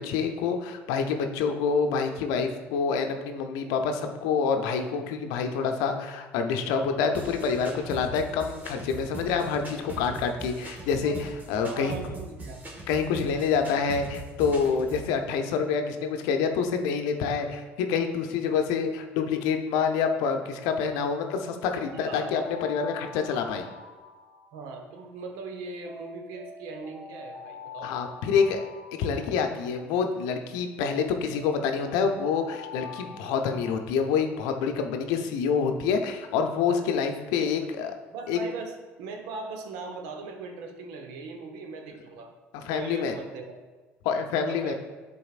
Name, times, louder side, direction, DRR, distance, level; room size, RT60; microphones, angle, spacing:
voice 1, 0.0-11.9 12.9-23.7 27.8-28.6 28.9-37.9 38.3-38.4 42.5-43.1 44.0-44.7, left 6 dB, 70° left, 5 dB, 0.6 m, -27 dB
sound 1, 7.1-15.1, right 2 dB, 30° right, 1.6 m, -40 dB
voice 2, 11.6-12.7 21.7-22.3 24.5-28.0 36.8-36.9 37.4-37.5 38.1-42.3 42.7-43.6 44.4-44.7, right 4 dB, 70° right, 4 dB, 0.9 m, -39 dB
Alarm, 21.1-25.3 25.8-30.3 30.8-34.6, left 4 dB, 90° right, 1.6 m, -45 dB
10.5 x 4.1 x 2.4 m, 1.3 s
hypercardioid pair, 60°, 6 cm